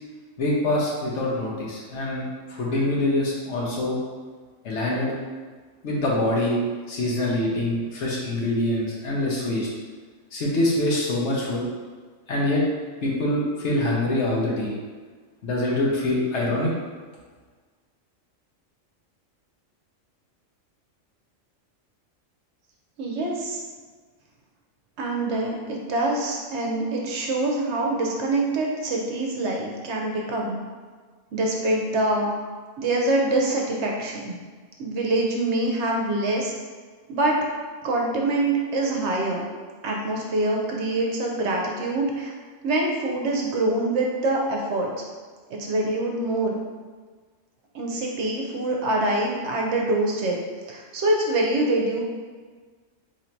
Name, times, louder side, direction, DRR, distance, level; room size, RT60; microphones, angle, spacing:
voice 1, 0.4-2.2 2.5-4.0 4.6-5.1 5.8-6.6 6.9-9.7 10.3-11.6 12.3-12.6 13.0-14.7 15.4-16.7, left 1 dB, 65° left, -4 dB, 1.1 m, -24 dB
voice 2, 23.0-23.6 25.0-30.6 31.3-32.3 32.8-34.4 34.8-36.5 37.1-37.4 37.8-39.5 39.8-42.3 42.6-44.9 45.5-46.6 47.7-50.4 50.7-52.0, right 2 dB, 65° right, -1 dB, 0.8 m, -25 dB
3.1 x 2.6 x 4.4 m, 1.5 s
omnidirectional pair, 1.3 m